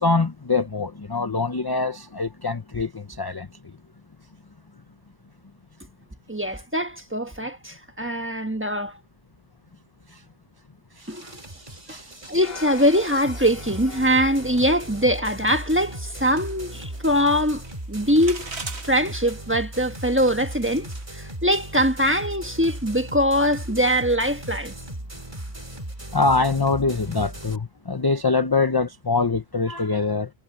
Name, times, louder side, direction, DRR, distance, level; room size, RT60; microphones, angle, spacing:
voice 1, 0.0-3.7 10.1-10.2 11.0-11.1 11.9-12.1 26.1-30.3, left 3 dB, 25° left, 0.7 m, -24 dB
voice 2, 6.3-8.9 11.1-11.2 12.3-17.6 17.9-18.5 18.9-20.9 21.1-24.7, equal, 10° right, 1.3 m, -22 dB
Over world intro, 11.0-27.6, right 1 dB, 30° right, 2.8 m, -37 dB
sound 1, 12.4-17.5, left 4 dB, 65° left, 2.0 m, -44 dB
sound 2, 15.4-21.2, right 4 dB, 80° right, 2.2 m, -42 dB
omnidirectional pair, 1.1 m